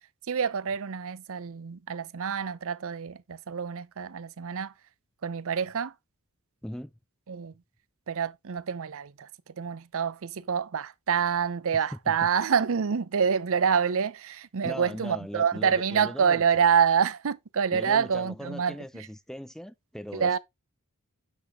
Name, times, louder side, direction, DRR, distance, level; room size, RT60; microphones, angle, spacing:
voice 1, 0.3-4.7 5.2-5.9 7.3-7.5 8.1-18.8 20.1-20.4, right 7 dB, 65° right, 0.6 m, -27 dB
voice 2, 14.6-16.7 17.7-20.4, equal, ahead, 0.4 m, -39 dB
8.1 x 6.2 x 3.1 m
head